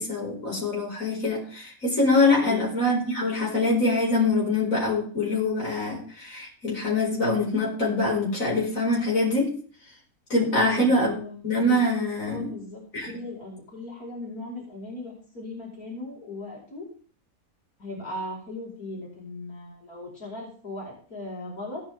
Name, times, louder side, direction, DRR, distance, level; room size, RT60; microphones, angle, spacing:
voice 1, 0.0-9.5 10.3-11.1 11.4-12.5 12.9-13.1, left 2 dB, 65° left, -4 dB, 5.5 m, -24 dB
voice 2, 2.4-2.7 10.5-11.4 12.2-16.9 17.8-21.8, left 2 dB, 80° left, -3 dB, 5.6 m, -38 dB
18.0 x 9.4 x 3.6 m, 0.43 s
omnidirectional pair, 1.5 m